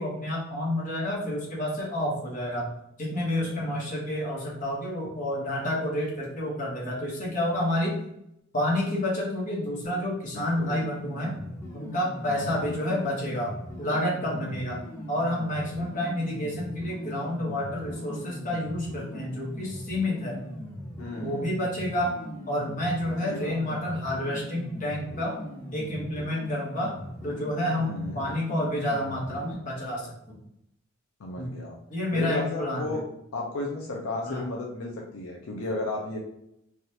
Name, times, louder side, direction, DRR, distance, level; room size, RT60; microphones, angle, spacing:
voice 1, 0.0-2.7 3.0-7.9 8.5-11.3 11.7-14.8 15.1-20.4 21.2-22.1 22.5-25.4 25.7-26.9 27.2-30.3 31.4-31.5 31.9-33.0 34.3-34.4, left 1 dB, 40° left, -4 dB, 1.0 m, -29 dB
voice 2, 10.3-10.8 12.3-12.6 14.3-14.7 21.0-21.5 23.2-23.8 27.8-28.2 31.2-31.8 32.1-33.0 33.3-36.2, left 2 dB, 75° left, -1 dB, 0.5 m, -34 dB
sound 1, 10.7-29.5, equal, 10° left, 0.6 m, -40 dB
3.4 x 2.4 x 2.7 m, 0.78 s
head